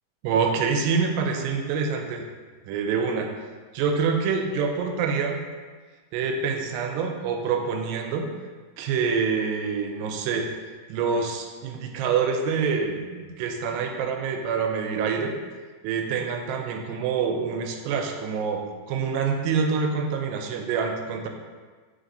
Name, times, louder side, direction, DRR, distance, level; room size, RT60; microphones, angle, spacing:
voice 1, 0.2-2.2 2.7-3.3 3.7-5.4 6.1-8.3 8.8-10.5 10.9-15.3 15.8-21.3, right 5 dB, 85° right, 3 dB, 2.3 m, -26 dB
4.7 x 4.0 x 2.6 m, 1.4 s
omnidirectional pair, 4.0 m